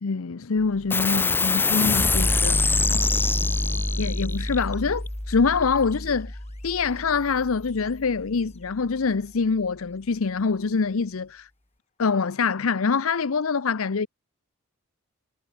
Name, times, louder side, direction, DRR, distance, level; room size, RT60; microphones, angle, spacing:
voice 1, 0.0-2.6 4.0-6.4 6.6-11.5 12.0-14.1, left 5 dB, 75° left, 0.6 m, -25 dB
sound 1, 0.6-11.6, left 3 dB, 30° left, 4.0 m, -59 dB
sound 2, 0.9-7.8, left 3 dB, 10° left, 0.7 m, -25 dB
head